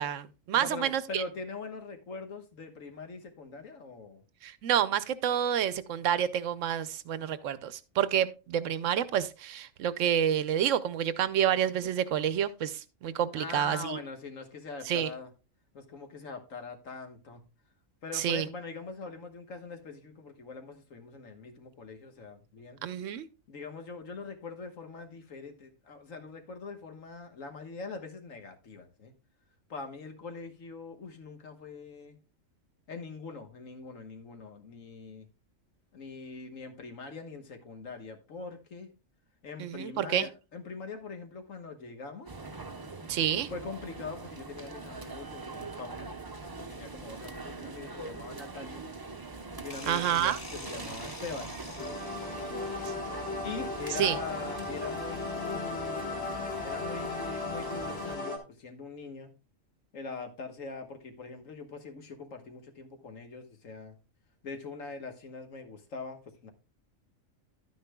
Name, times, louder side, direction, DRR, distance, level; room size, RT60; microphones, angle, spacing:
voice 1, 0.0-1.2 4.4-14.0 14.9-15.1 18.1-18.5 22.8-23.3 39.6-40.3 43.1-43.5 49.9-50.4 52.5-52.9 54.0-54.2, right 10 dB, 75° right, 0.9 m, -29 dB
voice 2, 0.5-4.2 13.3-15.3 15.7-17.4 18.0-22.8 23.5-29.1 29.7-32.2 32.9-35.3 35.9-38.9 39.4-42.3 43.5-46.1 46.6-48.8 49.6-52.0 53.4-56.1 56.4-59.3 59.9-64.0 64.4-66.5, left 4 dB, 75° left, 1.6 m, -42 dB
sound 1, 42.3-58.2, right 3 dB, 25° right, 0.6 m, -43 dB
sound 2, 49.7-52.6, left 1 dB, 25° left, 1.8 m, -45 dB
sound 3, 51.8-58.4, left 3 dB, 50° left, 1.8 m, -36 dB
11.5 x 9.5 x 2.2 m
omnidirectional pair, 1.4 m